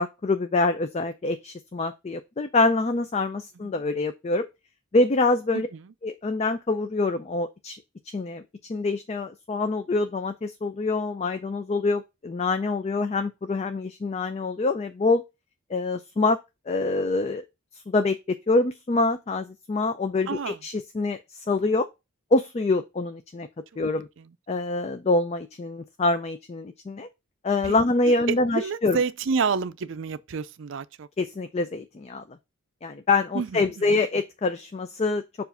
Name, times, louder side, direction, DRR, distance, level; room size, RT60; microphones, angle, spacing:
voice 1, 0.0-4.5 4.9-5.7 6.0-7.8 8.1-8.4 8.7-15.2 15.7-16.4 16.7-17.4 17.9-21.9 22.3-23.5 23.8-24.1 24.5-27.1 27.4-29.0 31.2-32.2 32.8-35.2, left 3 dB, 30° left, 0.4 m, -25 dB
voice 2, 20.3-20.6 24.2-24.3 27.6-27.7 28.1-31.1 33.3-33.6, right 5 dB, 65° right, 0.4 m, -29 dB
7.0 x 2.5 x 5.6 m
head